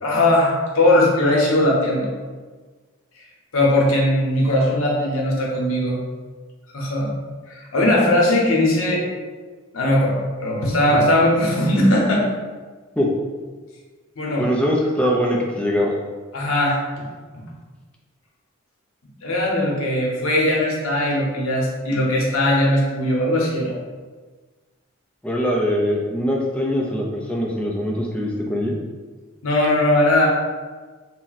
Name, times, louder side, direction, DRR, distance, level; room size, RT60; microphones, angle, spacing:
voice 1, 0.0-2.1 3.5-6.0 6.7-7.1 7.5-9.0 9.7-12.2 14.2-14.4 16.3-16.8 19.2-23.7 29.4-30.3, left 1 dB, 80° left, -3 dB, 0.8 m, -19 dB
voice 2, 14.4-15.9 25.2-28.8, equal, 5° left, -2 dB, 0.4 m, -22 dB
2.7 x 2.1 x 3.9 m, 1.4 s
head